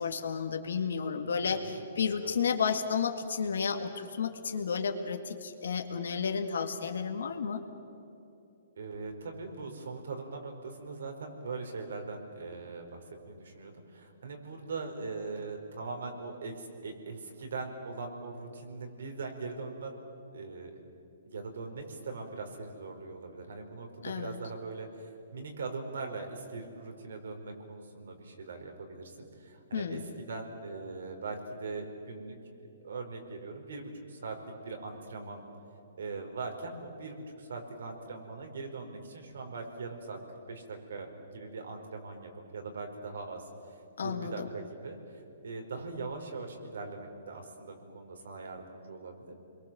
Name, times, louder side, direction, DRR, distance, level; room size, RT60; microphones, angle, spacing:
voice 1, 0.0-7.6 24.0-24.4 29.7-30.0 44.0-44.5, left 6 dB, 80° left, 5 dB, 2.0 m, -32 dB
voice 2, 1.5-1.9 2.2-2.4 8.7-20.0 20.3-20.7 21.3-34.4 34.6-35.4 36.0-43.7 44.0-49.3, right 3 dB, 80° right, 4 dB, 4.8 m, -41 dB
29.5 x 22.0 x 7.6 m, 2.8 s
hypercardioid pair, 160°, 0 cm